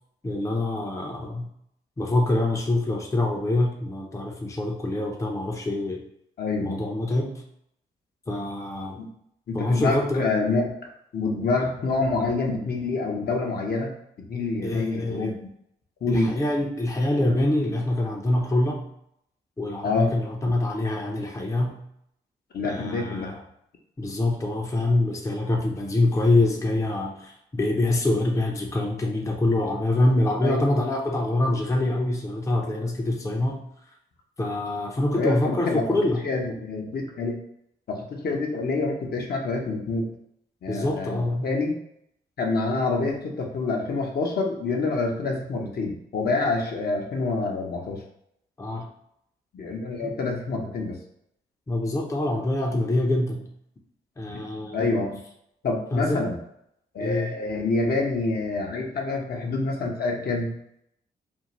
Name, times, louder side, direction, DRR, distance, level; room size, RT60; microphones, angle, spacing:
voice 1, 0.2-1.5 2.0-6.0 6.6-7.4 8.3-9.0 9.5-10.3 14.6-15.3 16.1-18.8 19.6-21.8 22.6-23.4 24.0-33.7 34.4-36.2 40.7-41.6 48.6-48.9 50.0-50.1 51.7-53.4 54.2-55.0 55.9-56.2 57.0-57.3, left 1 dB, 15° left, 1 dB, 0.6 m, -25 dB
voice 2, 6.4-6.8 9.0-9.1 9.5-10.7 11.1-13.9 14.3-15.5 16.0-16.3 19.8-20.1 22.5-23.3 30.4-30.6 35.1-35.8 36.2-37.4 37.9-40.1 40.6-41.8 42.4-48.0 49.5-51.0 54.3-54.4 54.7-55.2 55.6-56.4 56.9-60.5, left 3 dB, 50° left, 0 dB, 0.7 m, -27 dB
2.5 x 2.4 x 3.0 m, 0.74 s
hypercardioid pair, 40°, 21 cm